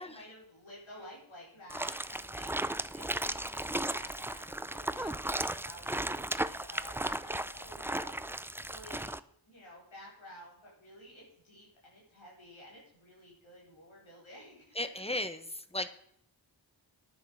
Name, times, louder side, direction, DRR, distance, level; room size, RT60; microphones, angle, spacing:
voice 1, 0.0-2.5 2.9-9.2 9.5-14.7, left 1 dB, 90° left, -4 dB, 4.5 m, -52 dB
sound 1, 1.7-9.2, right 1 dB, 5° right, 0.4 m, -35 dB
voice 2, 14.7-15.5 15.7-15.9, left 1 dB, 15° left, 10 dB, 1.2 m, -35 dB
9.9 x 9.1 x 6.4 m, 0.68 s
wide cardioid pair, 45°, 46 cm